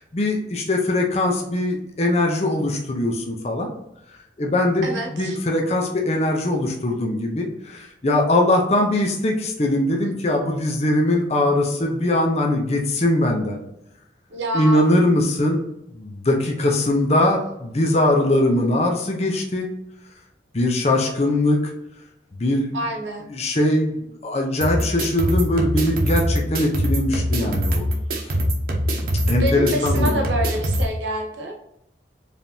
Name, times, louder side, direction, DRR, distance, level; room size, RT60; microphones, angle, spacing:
voice 1, 0.0-3.7 4.4-13.6 14.5-15.6 16.0-19.7 20.5-21.6 22.4-22.7 23.3-23.9 24.2-27.9 28.2-28.4 29.3-30.2, left 1 dB, 35° left, 1 dB, 0.7 m, -21 dB
voice 2, 4.8-5.4 14.3-14.9 22.7-23.3 29.4-31.5, right 1 dB, 90° right, 2 dB, 1.0 m, -27 dB
sound 1, 24.6-30.8, equal, 50° right, 0.9 m, -23 dB
4.8 x 3.4 x 2.8 m, 0.81 s
head